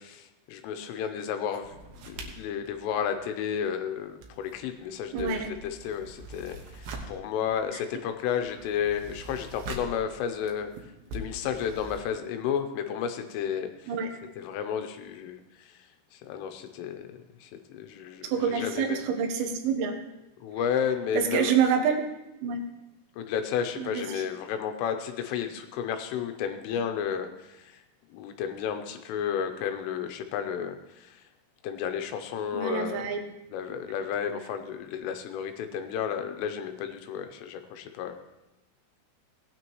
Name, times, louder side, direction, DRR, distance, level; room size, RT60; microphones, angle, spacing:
voice 1, 0.0-1.8 2.0-10.7 11.1-14.0 14.4-15.8 16.1-19.0 20.4-21.6 23.2-27.8 28.1-31.2 31.6-33.1 33.5-38.1, left 8 dB, 80° left, 7 dB, 3.3 m, -32 dB
sound 1, 1.6-3.8 4.1-12.1, right 2 dB, 70° right, 2.5 m, -43 dB
voice 2, 5.1-5.5 13.9-14.1 18.3-20.0 21.2-22.1 22.4-22.6 23.8-24.2 32.5-33.2, right 7 dB, 90° right, 4 dB, 3.8 m, -27 dB
17.5 x 9.4 x 3.1 m, 0.97 s
omnidirectional pair, 5.8 m